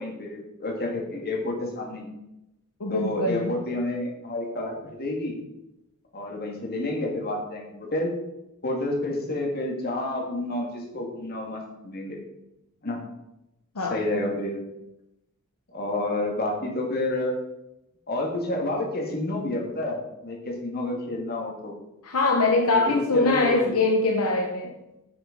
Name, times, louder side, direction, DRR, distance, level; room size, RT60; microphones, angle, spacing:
voice 1, 0.0-2.1 2.9-5.3 6.1-8.1 8.6-12.2 12.8-13.0 13.9-14.6 15.7-17.3 18.1-21.7 22.7-23.8, left 2 dB, 45° left, 0 dB, 2.1 m, -29 dB
voice 2, 2.8-3.6 13.7-14.0 22.0-24.7, left 3 dB, 75° left, 2 dB, 0.9 m, -23 dB
9.6 x 6.6 x 4.0 m, 0.89 s
head